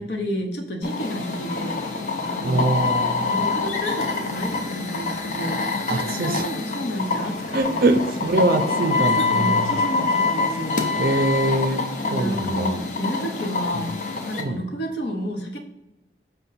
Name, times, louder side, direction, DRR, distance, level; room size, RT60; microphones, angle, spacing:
voice 1, 0.0-1.9 2.3-2.8 3.3-7.9 9.0-11.0 12.0-15.6, equal, 75° left, 2 dB, 0.9 m, -31 dB
sound 1, 0.8-14.4, left 4 dB, 45° left, 0.6 m, -25 dB
voice 2, 2.4-3.3 5.9-6.4 7.5-9.6 11.0-11.8 12.1-12.8 14.3-14.6, right 2 dB, 55° right, 7 dB, 0.5 m, -23 dB
5.4 x 2.2 x 4.0 m, 0.97 s
head